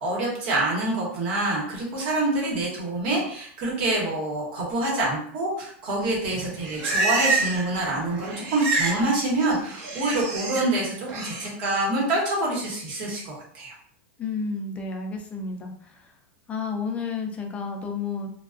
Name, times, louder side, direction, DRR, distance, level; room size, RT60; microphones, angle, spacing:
voice 1, 0.0-13.7, right 2 dB, 55° right, -3 dB, 1.1 m, -26 dB
Livestock farm animals working animals, 6.3-7.7 8.0-9.0 9.3-10.6 11.1-11.5, right 3 dB, 40° right, 0.6 m, -27 dB
voice 2, 14.2-16.0 16.5-18.3, left 4 dB, 20° left, 2 dB, 0.4 m, -31 dB
2.3 x 2.2 x 2.4 m, 0.62 s
supercardioid pair, 145°, 7 cm